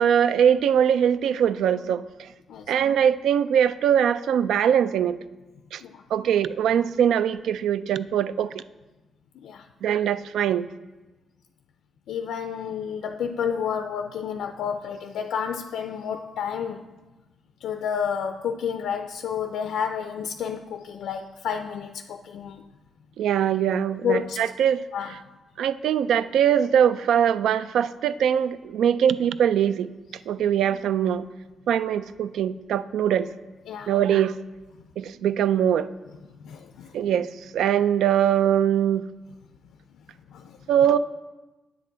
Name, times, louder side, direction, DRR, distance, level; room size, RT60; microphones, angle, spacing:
voice 1, 0.0-2.3 2.7-5.2 5.7-5.8 6.1-8.5 9.8-10.7 23.2-24.8 25.6-29.9 30.3-31.2 31.7-33.3 33.9-34.4 35.0-35.9 36.9-37.3 37.5-39.0 40.7-41.0, right 9 dB, 85° right, 14 dB, 0.3 m, -22 dB
voice 2, 12.1-16.9 17.6-22.6 24.0-24.4 24.9-25.1 33.7-33.9 36.4-37.0 40.3-40.6, left 7 dB, 85° left, 7 dB, 0.4 m, -30 dB
9.3 x 7.5 x 3.9 m, 1.2 s
cardioid pair, 105°, 0 cm